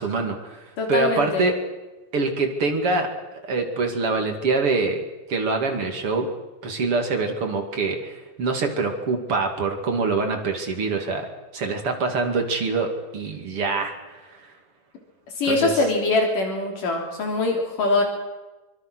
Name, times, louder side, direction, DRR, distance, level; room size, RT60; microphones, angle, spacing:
voice 1, 0.0-1.6 2.1-5.0 5.3-6.3 6.6-14.4 15.5-15.7, right 3 dB, 45° right, 4 dB, 3.2 m, -25 dB
voice 2, 0.8-1.5 15.4-18.0, left 3 dB, 75° left, 2 dB, 4.9 m, -23 dB
25.0 x 24.5 x 6.3 m, 1.1 s
omnidirectional pair, 3.8 m